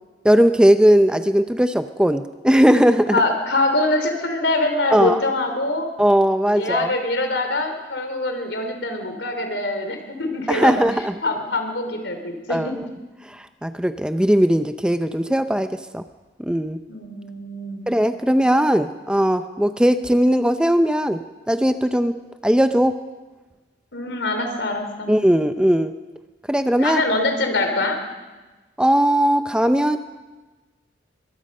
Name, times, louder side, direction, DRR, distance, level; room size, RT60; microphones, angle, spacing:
voice 1, 0.2-3.2 4.9-5.2 6.0-6.9 10.5-11.1 12.5-12.9 13.3-16.0 16.4-16.8 17.9-21.2 21.5-22.1 22.4-22.9 25.1-25.9 26.5-27.0 28.8-30.0, equal, 5° right, 9 dB, 0.6 m, -18 dB
voice 2, 3.1-5.8 6.5-10.8 11.2-12.7 16.9-17.8 23.9-25.1 26.8-28.0, left 2 dB, 75° left, 5 dB, 3.6 m, -24 dB
23.0 x 22.0 x 5.5 m, 1.2 s
head